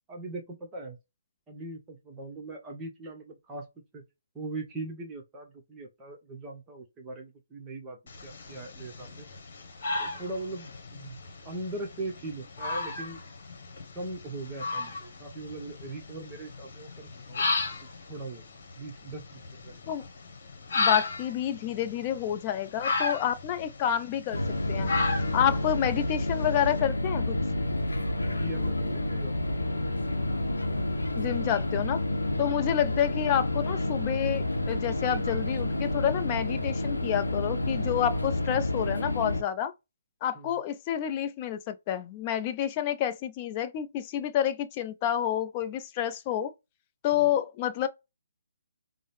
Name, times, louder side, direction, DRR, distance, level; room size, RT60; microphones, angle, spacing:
voice 1, 0.1-1.0 1.5-3.6 3.9-4.0 4.3-9.3 9.9-11.2 11.4-13.2 13.9-17.4 18.1-18.4 18.8-19.8 25.5-25.6 28.3-29.9 32.6-32.7 40.3-40.5 47.1-47.3, right 2 dB, 15° right, 0.9 m, -40 dB
vixen calling, 8.1-26.8, left 3 dB, 45° left, 1.1 m, -35 dB
voice 2, 20.8-24.4 24.7-24.9 25.3-27.4 31.2-32.0 32.4-39.7 40.2-46.5 47.0-47.9, left 10 dB, 25° left, 0.5 m, -29 dB
sound 1, 24.3-39.4, left 1 dB, 75° left, 0.7 m, -29 dB
5.3 x 2.0 x 3.3 m
figure-of-eight pair, 135°, 0 cm